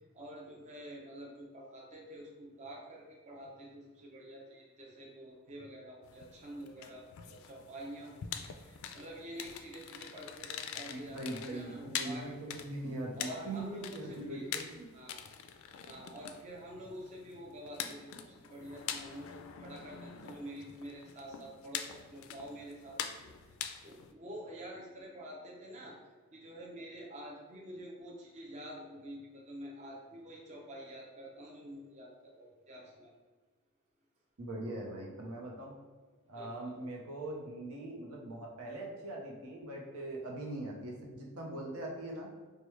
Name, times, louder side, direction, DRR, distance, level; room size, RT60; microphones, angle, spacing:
voice 1, 0.1-12.3 13.1-14.5 14.9-15.2 15.9-23.3 23.8-26.0 26.3-33.1 36.4-36.8, equal, 30° right, -2 dB, 0.5 m, -48 dB
sound 1, 6.0-24.1, left 8 dB, 70° left, 0.3 m, -45 dB
voice 2, 10.9-14.9 34.4-35.7 36.3-42.3, right 1 dB, 90° right, -1 dB, 0.8 m, -41 dB
4.7 x 2.2 x 3.1 m, 1.4 s
head